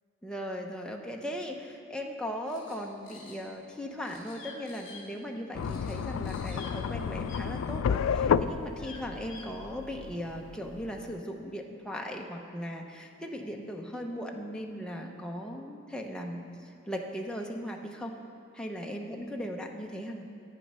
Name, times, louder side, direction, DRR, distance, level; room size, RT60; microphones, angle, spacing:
voice 1, 0.2-18.2 18.5-20.2, equal, 5° left, 1 dB, 0.7 m, -38 dB
sound 1, 2.4-3.7 4.0-5.1 5.4-6.6 6.9-7.0, left 2 dB, 40° left, 2.9 m, -54 dB
sound 2, 4.3-4.6 4.8-5.0 6.5-6.8 7.2-7.4 8.8-9.5, left 5 dB, 60° left, 1.3 m, -46 dB
sound 3, 5.5-11.2, left 7 dB, 80° left, 0.3 m, -31 dB
10.5 x 9.2 x 5.4 m, 2.5 s
head